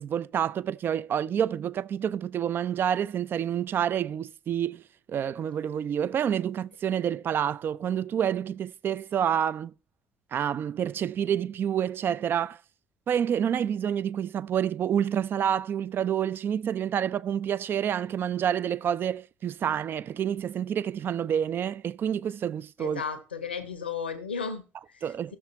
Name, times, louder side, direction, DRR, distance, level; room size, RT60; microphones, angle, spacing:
voice 1, 0.0-4.8 5.1-9.7 10.3-12.6 13.1-23.0 25.0-25.4, right 9 dB, 40° right, 0.5 m, -28 dB
voice 2, 22.8-25.4, left 6 dB, 85° left, 1.1 m, -35 dB
13.5 x 6.5 x 4.2 m
figure-of-eight pair, 50°, 5 cm